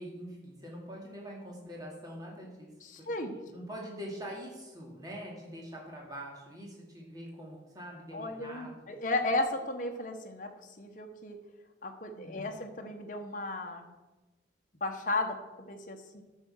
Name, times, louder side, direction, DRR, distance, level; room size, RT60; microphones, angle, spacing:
voice 1, 0.0-2.7 3.2-8.9 12.1-12.5, equal, 20° right, -3 dB, 2.4 m, -44 dB
voice 2, 2.8-3.3 8.1-10.5 10.8-11.4 11.8-13.9 14.8-15.4 15.7-16.2, left 2 dB, 45° left, 4 dB, 1.1 m, -34 dB
9.7 x 6.5 x 6.4 m, 1.1 s
head